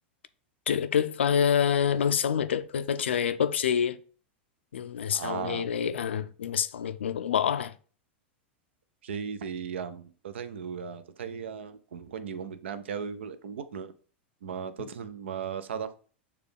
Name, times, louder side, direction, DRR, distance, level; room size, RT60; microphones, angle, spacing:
voice 1, 0.7-4.0 4.7-7.7, left 8 dB, 90° left, 0.3 m, -27 dB
voice 2, 5.1-5.6 9.0-13.9 14.4-15.9, right 7 dB, 85° right, 0.5 m, -36 dB
6.7 x 2.3 x 3.3 m
hypercardioid pair, 110°, 6 cm